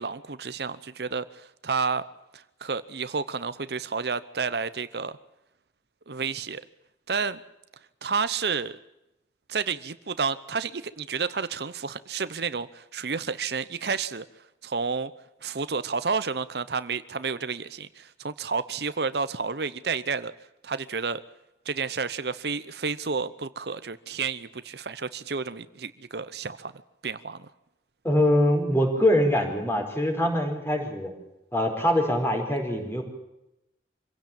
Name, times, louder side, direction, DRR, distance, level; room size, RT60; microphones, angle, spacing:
voice 1, 0.0-2.0 2.3-5.1 6.1-6.6 7.1-7.4 8.0-8.8 9.5-14.3 14.6-15.1 15.4-20.3 20.6-21.2 21.6-26.7 27.0-27.5, right 5 dB, 65° right, 14 dB, 0.8 m, -30 dB
voice 2, 28.0-31.1 31.5-33.0, left 1 dB, 15° left, 2 dB, 4.9 m, -23 dB
26.0 x 16.5 x 8.8 m, 0.92 s
head